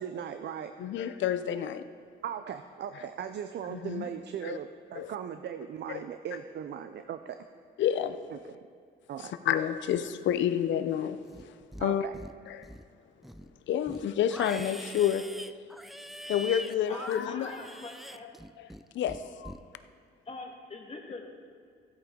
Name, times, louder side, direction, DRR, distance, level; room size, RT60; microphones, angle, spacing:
voice 1, 0.0-0.7 2.2-7.4 8.3-8.4 9.1-9.3 11.8-12.2, right 8 dB, 60° right, 9 dB, 0.5 m, -38 dB
voice 2, 0.8-1.8 3.7-4.1 4.4-4.6 5.0-5.1 7.8-8.1 9.5-11.2 11.8-12.0 12.5-12.6 13.7-15.2 16.3-17.5 19.0-19.1, left 10 dB, 70° left, 11 dB, 0.6 m, -28 dB
Livestock farm animals working animals, 11.2-11.9 12.1-12.9 13.2-18.8 19.1-19.6, equal, ahead, 0.4 m, -43 dB
voice 3, 16.9-18.3 19.2-19.3 20.2-21.3, left 3 dB, 30° left, 2 dB, 1.6 m, -43 dB
15.5 x 8.7 x 3.7 m, 2.1 s
cardioid pair, 90°, 20 cm